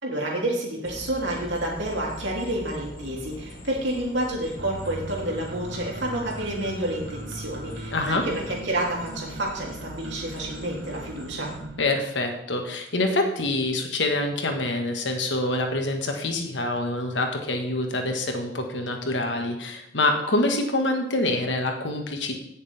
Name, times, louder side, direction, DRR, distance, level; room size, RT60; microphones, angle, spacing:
voice 1, 0.0-11.5, right 1 dB, 80° right, -2 dB, 3.2 m, -29 dB
sound 1, 0.8-11.6, left 1 dB, 55° left, 1.7 m, -43 dB
sound 2, 4.6-11.8, right 2 dB, 65° right, 1.1 m, -40 dB
voice 2, 7.9-8.2 11.8-22.4, left 2 dB, 85° left, 3 dB, 1.7 m, -26 dB
17.0 x 6.7 x 3.6 m, 0.78 s
head